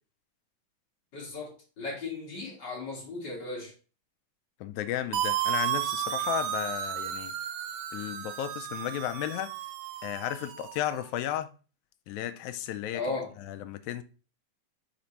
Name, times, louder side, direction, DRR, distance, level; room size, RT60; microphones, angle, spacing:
voice 1, 1.1-3.7 12.9-13.3, left 3 dB, 40° left, 2.7 m, -36 dB
voice 2, 4.6-7.3 7.9-9.5 10.0-11.5 12.1-13.0 13.5-14.0, left 12 dB, 85° left, 2.0 m, -33 dB
sound 1, 5.1-10.9, right 11 dB, 80° right, 1.8 m, -33 dB
5.9 x 4.5 x 4.1 m
omnidirectional pair, 3.3 m